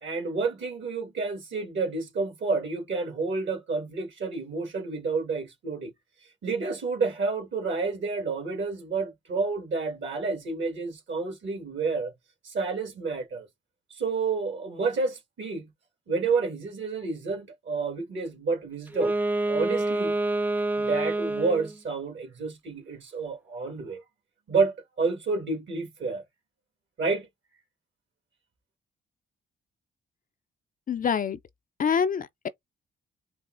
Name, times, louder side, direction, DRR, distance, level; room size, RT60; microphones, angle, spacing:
voice 1, 0.0-5.9 6.4-12.1 12.4-13.5 13.9-15.7 16.1-19.1 19.5-20.2 20.8-24.0 24.5-26.2 27.0-27.3, right 4 dB, 65° right, 1.9 m, -29 dB
Wind instrument woodwind instrument, 18.9-21.8, right 2 dB, 10° right, 0.5 m, -27 dB
voice 2, 30.9-31.4 31.8-32.5, left 7 dB, 40° left, 0.5 m, -26 dB
5.4 x 2.0 x 2.6 m
supercardioid pair, 50°, 21 cm